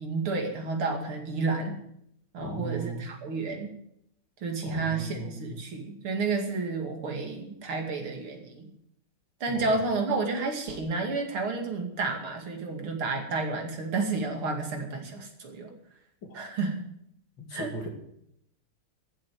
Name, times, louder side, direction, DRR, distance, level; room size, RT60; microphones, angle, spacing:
voice 1, 0.0-1.8 2.3-3.7 4.4-8.7 9.4-15.7 16.3-16.8 17.5-17.7, right 3 dB, 80° right, 3 dB, 3.2 m, -31 dB
voice 2, 2.4-3.1 4.6-5.5 9.5-9.8 16.3-16.4 17.4-17.9, right 1 dB, 60° left, 2 dB, 3.3 m, -37 dB
14.5 x 8.0 x 9.5 m, 0.74 s
omnidirectional pair, 2.3 m